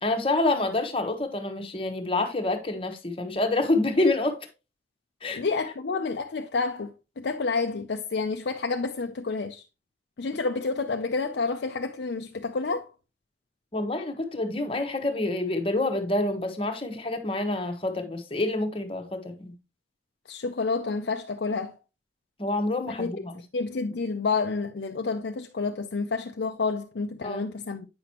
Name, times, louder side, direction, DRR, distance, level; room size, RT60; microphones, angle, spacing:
voice 1, 0.0-4.4 5.2-5.4 13.7-19.5 22.4-23.3 27.2-27.5, left 2 dB, 30° left, 1.1 m, -27 dB
voice 2, 5.4-9.6 10.2-12.9 20.3-21.7 23.0-23.1 23.5-27.9, left 4 dB, 70° left, 0.5 m, -29 dB
8.5 x 5.9 x 2.9 m
head